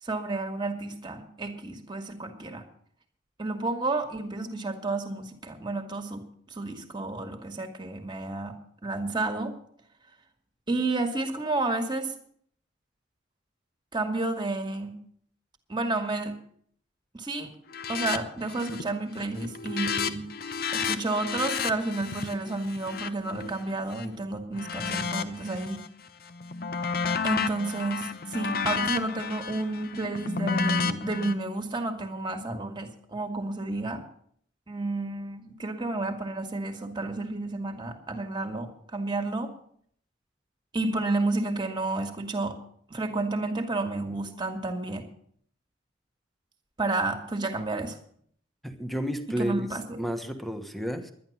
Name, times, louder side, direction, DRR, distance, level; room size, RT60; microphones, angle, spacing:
voice 1, 0.0-2.6 3.4-6.2 6.5-8.5 8.8-9.5 10.7-12.1 13.9-14.9 15.7-16.3 17.1-17.5 17.9-20.3 20.7-25.8 27.2-34.0 34.7-39.5 40.7-42.6 42.9-45.0 46.8-48.0 49.4-50.0, right 2 dB, 25° right, 6 dB, 1.8 m, -31 dB
sound 1, 17.7-18.2 18.5-18.9 19.2-24.1 24.6-25.9 26.3-31.3, left 5 dB, 50° left, 0.8 m, -31 dB
voice 2, 48.6-49.7 50.0-51.1, equal, ahead, 7 dB, 1.2 m, -31 dB
11.0 x 11.0 x 7.2 m, 0.63 s
head